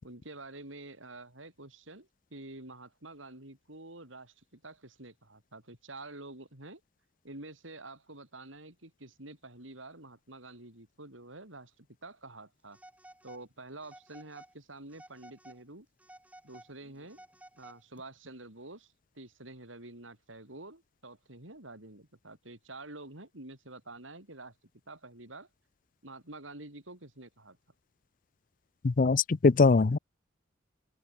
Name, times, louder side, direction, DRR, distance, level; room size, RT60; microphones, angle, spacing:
voice 1, 0.0-6.8 7.2-12.8 13.2-15.9 16.4-17.2 17.5-24.5 24.9-25.5 26.0-27.6, right 2 dB, 85° right, 6.5 m, -48 dB
Telephone, 12.7-13.5 13.8-14.5 14.9-15.6 16.0-18.0, right 1 dB, 5° right, 7.9 m, -54 dB
voice 2, 28.8-30.0, left 4 dB, 45° left, 0.5 m, -22 dB
head